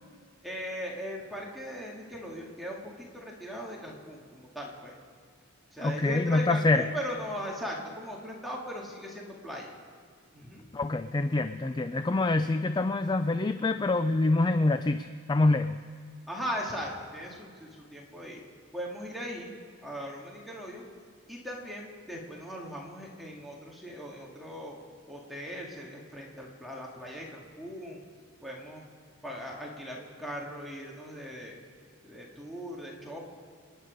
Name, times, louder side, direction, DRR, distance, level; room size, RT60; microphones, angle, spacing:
voice 1, 0.4-5.0 5.7-9.7 10.3-10.7 16.3-18.4 18.7-19.5 19.8-20.8 21.3-24.8 25.1-28.0 28.4-28.8 29.2-31.6 32.0-33.2, equal, ahead, -3 dB, 2.0 m, -39 dB
voice 2, 5.8-6.9 10.7-15.8, left 2 dB, 20° left, 10 dB, 0.3 m, -26 dB
27.0 x 10.0 x 5.2 m, 2.1 s
head